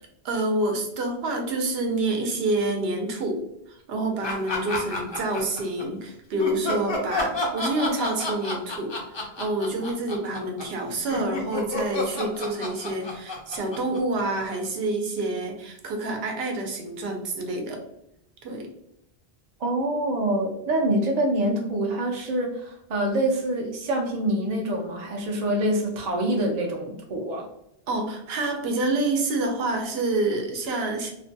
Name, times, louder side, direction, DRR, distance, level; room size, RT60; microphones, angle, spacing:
voice 1, 0.2-17.8 18.4-18.7 27.9-31.1, right 2 dB, 75° right, 2 dB, 0.8 m, -28 dB
sound 1, 4.2-5.8 6.4-14.7, left 2 dB, 40° left, 0.4 m, -30 dB
voice 2, 19.6-27.5, right 1 dB, 55° right, 0 dB, 0.5 m, -25 dB
2.5 x 2.1 x 2.6 m, 0.79 s
omnidirectional pair, 1.0 m